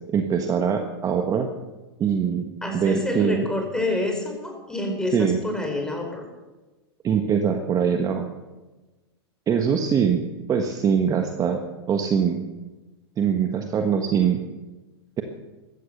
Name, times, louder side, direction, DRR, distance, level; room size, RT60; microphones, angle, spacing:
voice 1, 0.1-1.5 2.0-2.4 2.7-3.5 5.1-5.4 7.0-8.2 9.5-10.2 10.5-12.4 13.2-14.4, right 7 dB, 25° right, 5 dB, 1.5 m, -22 dB
voice 2, 2.6-6.2, left 2 dB, 5° left, 2 dB, 4.8 m, -28 dB
15.5 x 13.5 x 6.8 m, 1.2 s
hypercardioid pair, 120°, 14 cm